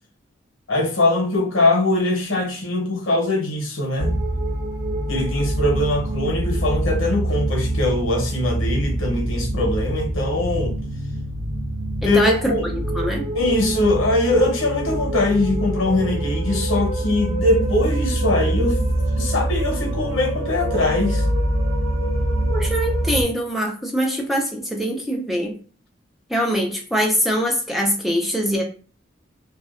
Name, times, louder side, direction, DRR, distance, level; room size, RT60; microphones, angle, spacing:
voice 1, 0.7-4.1 5.1-10.8 12.0-12.6 13.3-18.8 19.2-21.3, left 2 dB, 80° left, 0.7 m, -21 dB
sound 1, 4.0-23.2, right 1 dB, 85° right, 0.7 m, -24 dB
voice 2, 12.0-12.4 12.7-13.2 22.5-25.5 26.3-28.6, equal, ahead, 0.3 m, -23 dB
2.6 x 2.1 x 2.4 m
head